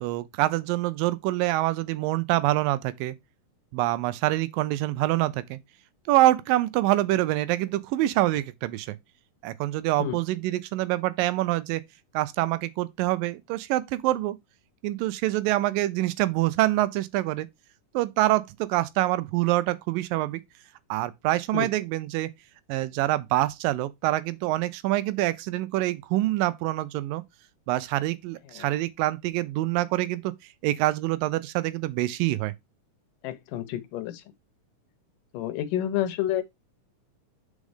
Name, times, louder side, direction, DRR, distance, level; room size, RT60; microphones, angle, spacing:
voice 1, 0.0-3.1 3.7-5.6 6.1-9.0 9.4-11.8 12.1-14.4 14.8-17.5 17.9-20.4 20.9-22.3 22.7-27.2 27.7-30.3 30.6-32.5, right 16 dB, 85° right, 2.3 m, -25 dB
voice 2, 33.2-34.2 35.3-36.4, left 11 dB, 75° left, 2.4 m, -29 dB
5.3 x 4.9 x 4.9 m
omnidirectional pair, 4.0 m